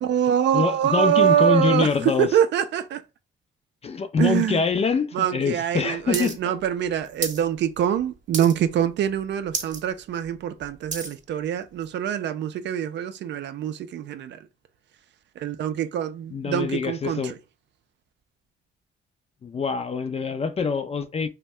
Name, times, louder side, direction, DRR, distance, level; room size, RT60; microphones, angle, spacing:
voice 1, 0.0-3.0 4.2-4.6 5.1-14.4 15.4-17.3, right 10 dB, 65° right, 0.4 m, -24 dB
voice 2, 0.5-2.4 3.8-6.5 16.3-17.3 19.4-21.3, left 5 dB, 30° left, 0.4 m, -25 dB
sound 1, 6.1-6.3 6.6-7.4 7.8-8.0 8.3-8.8 9.1-9.2 9.5-9.8 10.2-11.2 11.8-11.9, right 5 dB, 40° right, 0.9 m, -31 dB
2.6 x 2.1 x 3.2 m
cardioid pair, 90°, 20 cm